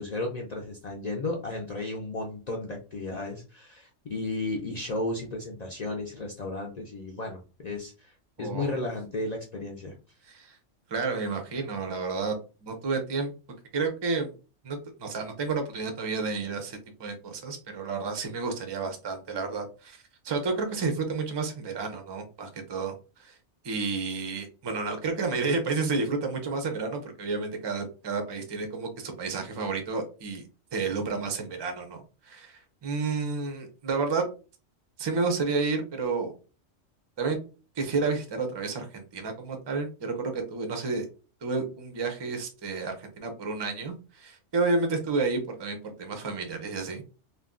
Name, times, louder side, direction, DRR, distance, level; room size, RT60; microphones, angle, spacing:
voice 1, 0.0-8.1 8.4-9.9, left 2 dB, 55° left, 0 dB, 0.4 m, -34 dB
voice 2, 8.4-8.7 10.2-10.6 10.9-12.4 12.6-13.3 13.7-14.3 14.6-23.4 23.6-30.4 30.7-34.3 35.0-36.3 37.2-37.4 37.8-41.0 41.4-47.0, right 4 dB, 35° right, 5 dB, 0.4 m, -31 dB
2.5 x 2.2 x 3.6 m, 0.34 s
omnidirectional pair, 1.3 m